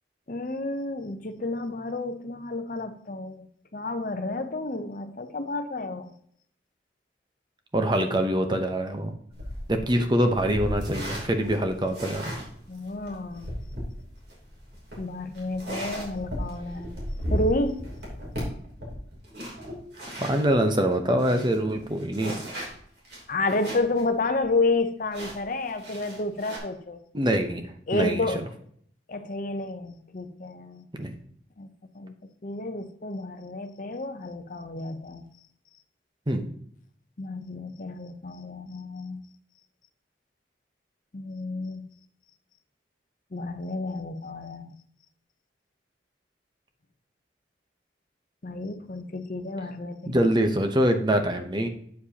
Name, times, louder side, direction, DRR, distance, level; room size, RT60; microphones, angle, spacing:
voice 1, 0.3-3.5 3.7-6.1 12.7-13.5 15.0-17.0 17.3-17.9 23.3-27.0 27.9-28.4 29.1-30.9 31.6-31.7 31.9-32.1 32.4-35.3 37.2-39.2 41.1-41.9 43.3-44.7 48.4-50.1, left 2 dB, 45° left, 8 dB, 0.6 m, -30 dB
voice 2, 7.7-9.1 9.7-12.3 20.1-22.3 27.1-27.6 27.9-28.4 30.9-31.1 36.3-36.5 50.1-51.7, right 1 dB, 25° right, 6 dB, 0.8 m, -24 dB
sound 1, 9.3-20.5 20.9-21.0 21.2-24.0 24.4-24.5 25.1-26.6, equal, 65° right, 3.1 m, -36 dB
8.4 x 7.3 x 2.8 m, 0.63 s
head